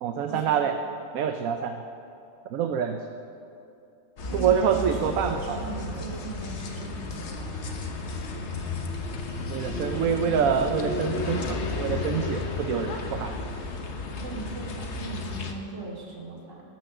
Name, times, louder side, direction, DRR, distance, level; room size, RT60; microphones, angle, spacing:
voice 1, 0.0-0.8 1.1-1.8 2.5-3.0 4.3-5.6 9.5-13.3, right 7 dB, 75° right, 6 dB, 1.1 m, -26 dB
sound 1, 4.2-15.5, left 3 dB, 55° left, 1.3 m, -33 dB
voice 2, 4.3-8.0 14.2-16.6, right 3 dB, 55° right, -3 dB, 2.7 m, -38 dB
18.5 x 6.2 x 7.2 m, 2.7 s
omnidirectional pair, 1.5 m